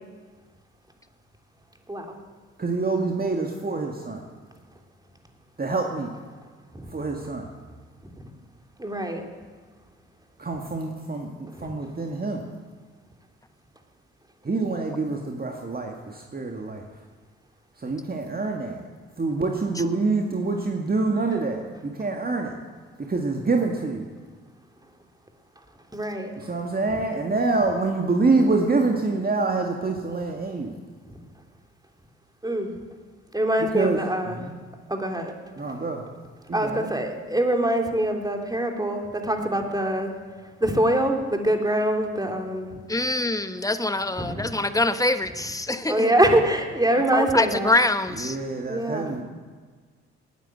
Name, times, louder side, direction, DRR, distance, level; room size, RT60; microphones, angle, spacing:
voice 1, 2.6-4.2 5.6-6.1 6.9-7.5 10.4-12.4 14.4-16.8 17.8-18.8 19.2-22.5 23.1-24.0 26.4-30.7 33.6-34.6 35.6-36.0 36.5-36.9 48.2-49.2, right 3 dB, 30° right, 2 dB, 2.0 m, -26 dB
voice 2, 8.8-9.3 11.6-11.7 25.9-26.3 31.1-31.2 32.4-32.7 33.3-34.4 34.9-35.3 36.5-40.1 40.6-42.8 44.2-44.6 45.9-47.7 48.7-49.2, right 1 dB, 10° right, 3 dB, 3.2 m, -24 dB
voice 3, 42.9-46.1 47.1-48.4, left 2 dB, 10° left, 10 dB, 1.3 m, -24 dB
19.0 x 9.4 x 7.8 m, 1.5 s
hypercardioid pair, 50°, 32 cm